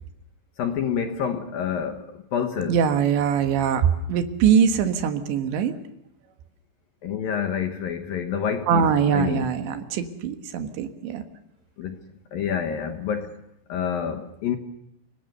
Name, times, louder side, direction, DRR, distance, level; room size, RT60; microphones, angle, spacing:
voice 1, 0.6-2.8 7.0-9.5 11.8-12.0 12.3-13.4 13.7-14.6, left 7 dB, 65° left, 6 dB, 2.5 m, -28 dB
voice 2, 2.7-5.7 8.7-11.2, right 7 dB, 75° right, 7 dB, 3.6 m, -22 dB
28.5 x 19.0 x 6.8 m, 0.81 s
omnidirectional pair, 5.5 m